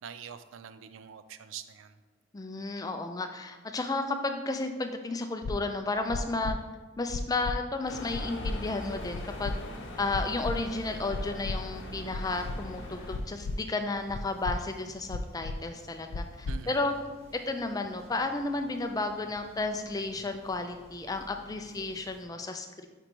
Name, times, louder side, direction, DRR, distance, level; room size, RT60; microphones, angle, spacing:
voice 1, 0.0-2.0 16.5-17.0, right 7 dB, 70° right, 11 dB, 0.4 m, -45 dB
voice 2, 2.3-6.6 7.0-9.6 10.0-16.9 17.3-22.9, left 3 dB, 20° left, 6 dB, 0.4 m, -33 dB
sound 1, 5.4-5.5 6.1-6.5 7.1-7.6 8.1-8.5 9.1-9.5 10.1-10.5 11.1-11.6 12.1-12.6 13.1-13.6 14.1-14.6 15.1-15.6 16.1-16.6, left 3 dB, 80° left, 0.4 m, -34 dB
sound 2, 7.9-13.2, left 1 dB, 60° left, 0.8 m, -41 dB
sound 3, 8.7-22.2, equal, 30° right, 0.9 m, -55 dB
4.5 x 4.4 x 5.2 m, 1.3 s
head